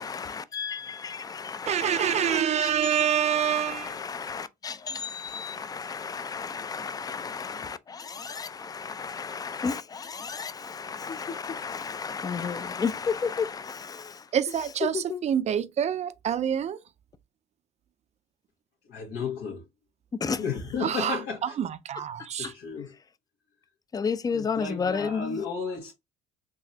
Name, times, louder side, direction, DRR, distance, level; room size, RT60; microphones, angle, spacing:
voice 1, 0.0-14.3 14.8-15.2 20.1-20.4 22.4-22.5 23.9-25.4, left 5 dB, 20° left, 0.4 m, -33 dB
voice 2, 1.7-3.9 14.3-16.8 20.8-22.5, right 9 dB, 40° right, 0.4 m, -27 dB
voice 3, 18.9-19.6 20.4-21.5 22.4-22.9 24.3-25.9, left 5 dB, 80° left, 1.4 m, -33 dB
3.8 x 2.6 x 2.7 m
cardioid pair, 110°, 17 cm